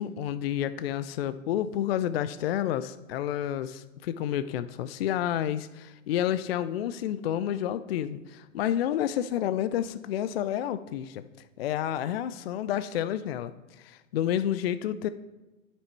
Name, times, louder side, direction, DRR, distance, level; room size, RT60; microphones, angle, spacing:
voice 1, 0.0-11.2 11.6-15.1, left 11 dB, 45° left, 13 dB, 0.4 m, -30 dB
9.7 x 6.0 x 4.5 m, 1.1 s
figure-of-eight pair, 110°, 42 cm